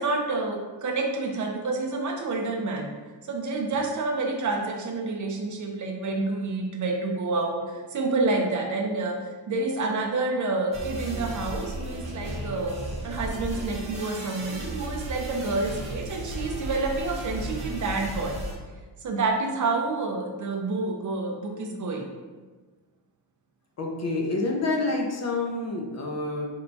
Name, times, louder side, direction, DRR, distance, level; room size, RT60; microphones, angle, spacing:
voice 1, 0.0-2.9 3.2-9.2 9.5-12.8 13.0-18.4 19.0-22.1, right 3 dB, 45° right, 2 dB, 0.4 m, -28 dB
sound 1, 10.7-18.5, right 1 dB, 15° right, 0.7 m, -35 dB
voice 2, 23.8-26.5, left 2 dB, 35° left, 1 dB, 0.5 m, -28 dB
4.4 x 2.2 x 3.9 m, 1.4 s
wide cardioid pair, 170°, 45 cm